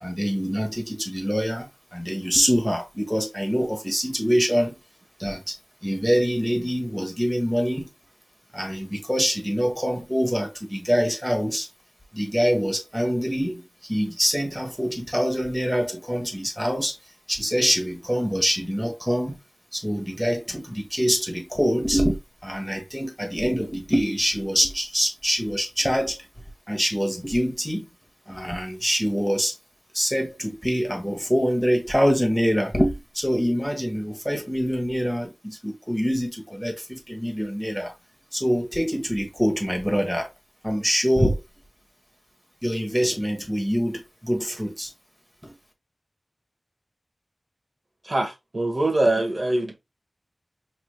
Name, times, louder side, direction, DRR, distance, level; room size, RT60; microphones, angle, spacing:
voice 1, 0.0-4.7 5.2-5.6 5.8-7.9 8.5-11.7 12.1-17.0 17.3-19.4 19.7-26.3 26.7-27.9 28.3-29.6 29.9-37.9 38.3-40.3 40.6-41.4 42.6-44.9 45.4-45.6, equal, ahead, 1.2 m, -25 dB
voice 2, 48.0-49.7, right 2 dB, 55° right, 1.2 m, -23 dB
4.9 x 3.2 x 2.2 m
wide cardioid pair, 55°, 0 cm